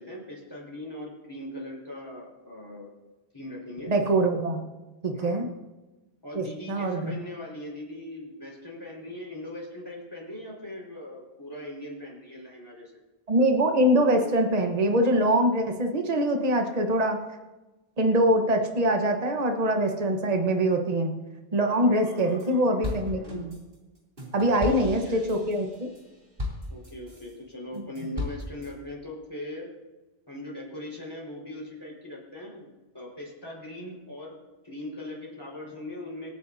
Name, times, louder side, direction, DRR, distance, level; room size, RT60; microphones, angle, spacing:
voice 1, 0.0-2.9 3.3-3.9 5.1-5.5 6.2-12.9 21.8-23.4 24.6-25.2 26.7-29.7 30.3-34.4 34.6-36.3, left 1 dB, 20° left, -3 dB, 4.7 m, -40 dB
voice 2, 3.9-4.6 5.0-5.5 6.3-7.1 13.3-17.2 18.0-21.1 21.5-23.6 24.3-25.9, right 1 dB, 40° right, 3 dB, 1.3 m, -24 dB
sound 1, 22.0-22.5 22.8-27.3 27.7-28.7, left 2 dB, 60° right, 3.2 m, -36 dB
26.5 x 9.8 x 2.7 m, 1.1 s
omnidirectional pair, 1.0 m